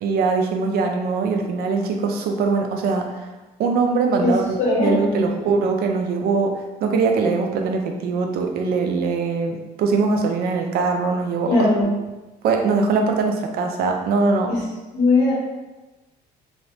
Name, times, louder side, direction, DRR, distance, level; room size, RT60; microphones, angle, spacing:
voice 1, 0.0-3.3 3.6-11.7 12.4-14.5, right 4 dB, 65° right, 3 dB, 0.4 m, -22 dB
voice 2, 4.6-5.5 11.5-11.9 14.5-14.6 14.9-15.3, left 2 dB, 90° left, -8 dB, 1.0 m, -19 dB
3.0 x 2.0 x 2.8 m, 1.1 s
cardioid pair, 110°, 17 cm